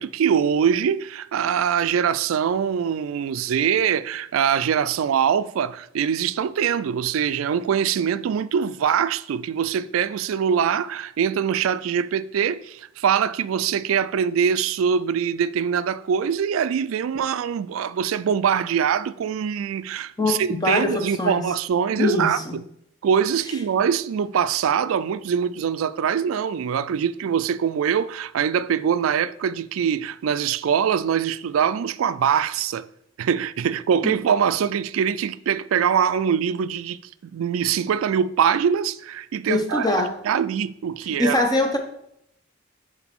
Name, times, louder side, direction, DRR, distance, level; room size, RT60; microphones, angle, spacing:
voice 1, 0.0-22.6 23.0-32.9 33.2-39.9 40.2-41.4, right 7 dB, 90° right, 0.3 m, -23 dB
voice 2, 20.2-21.4 22.0-22.6 34.0-34.1 39.5-40.1 41.1-41.8, left 2 dB, 20° left, 0.8 m, -23 dB
6.0 x 3.9 x 6.0 m
head